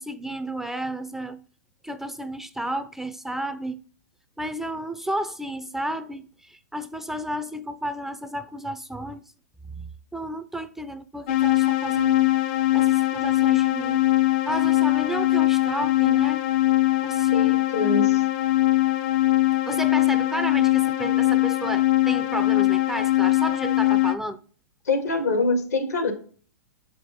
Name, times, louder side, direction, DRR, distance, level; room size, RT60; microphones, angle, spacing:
voice 1, 0.0-1.4 1.8-3.8 4.4-9.2 9.7-12.3 12.7-14.1 14.5-16.5 17.0-17.6 19.7-24.4, right 1 dB, 5° right, 0.4 m, -32 dB
sound 1, 11.3-24.1, left 16 dB, 45° left, 0.7 m, -21 dB
voice 2, 17.3-18.2 24.9-26.1, left 3 dB, 75° left, 1.8 m, -25 dB
7.3 x 5.1 x 3.5 m
hypercardioid pair, 120°, 9 cm